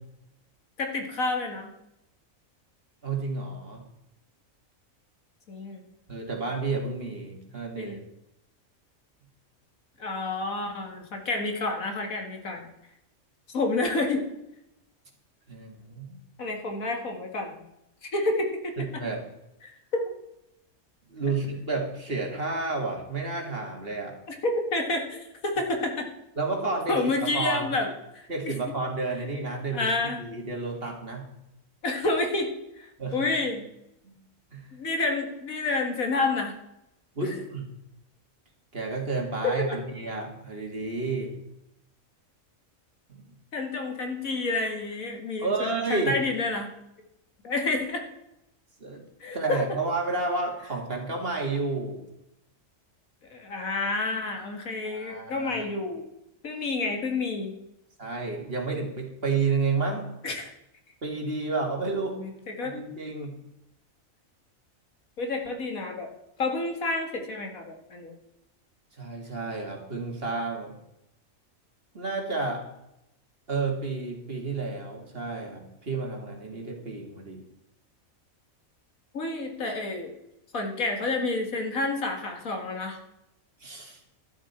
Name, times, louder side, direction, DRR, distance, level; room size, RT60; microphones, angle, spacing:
voice 1, 0.8-1.7 5.5-5.9 7.8-8.0 10.0-12.6 13.5-14.3 16.4-17.6 18.0-18.7 19.6-20.2 24.3-26.1 26.9-28.6 29.7-30.2 31.8-33.7 34.7-36.5 39.4-39.7 43.5-46.7 47.4-48.0 49.2-49.6 53.3-56.0 56.4-57.6 60.2-60.5 62.2-62.8 65.2-66.1 66.4-68.1 79.1-80.1 80.5-83.0, left 2 dB, 90° left, 4 dB, 2.3 m, -29 dB
voice 2, 3.0-3.8 6.1-8.0 15.5-16.2 18.8-19.2 21.1-24.1 26.4-27.7 28.3-31.3 33.0-33.3 34.0-34.2 34.5-34.7 37.2-37.7 38.7-41.3 43.1-43.4 45.4-46.2 48.8-49.0 49.3-52.1 54.8-55.6 58.0-60.1 61.0-62.2 62.6-63.4 69.0-70.8 71.9-72.6 73.5-77.4 83.6-84.0, right 3 dB, 45° right, 1 dB, 2.4 m, -31 dB
12.5 x 11.5 x 4.3 m, 0.85 s
omnidirectional pair, 1.4 m